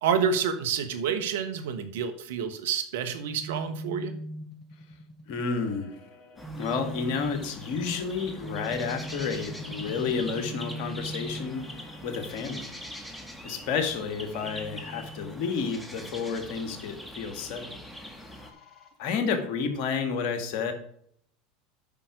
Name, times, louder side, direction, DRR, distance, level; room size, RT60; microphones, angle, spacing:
voice 1, 0.0-4.1, right 7 dB, 75° right, 9 dB, 1.3 m, -28 dB
sound 1, 3.4-12.5 14.4-16.4 17.9-19.8, equal, 25° left, 3.9 m, -42 dB
voice 2, 5.3-6.0 6.6-12.7 13.4-17.8 19.0-20.7, left 5 dB, 60° left, 6 dB, 2.0 m, -31 dB
sound 2, 6.4-18.5, equal, 5° left, 2.0 m, -43 dB
8.9 x 5.9 x 5.2 m, 0.65 s
hypercardioid pair, 85°, 0 cm